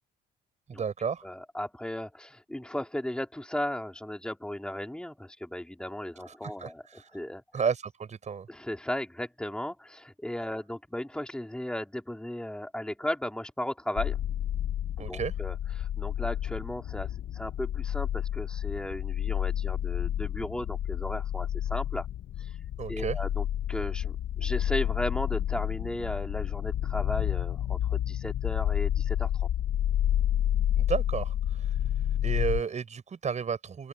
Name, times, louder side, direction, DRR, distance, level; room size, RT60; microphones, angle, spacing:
voice 1, 0.7-1.2 6.3-7.1 7.5-8.5 15.0-15.3 22.8-23.2 30.8-31.8 32.2-33.9, right 6 dB, 40° right, 5.3 m, -32 dB
voice 2, 1.2-7.4 8.5-14.2 15.1-22.1 22.4-22.6 22.9-29.3, left 1 dB, 5° left, 4.1 m, -36 dB
sound 1, 14.0-32.6, left 11 dB, 65° left, 1.3 m, -30 dB
open air
supercardioid pair, 80°, 18 cm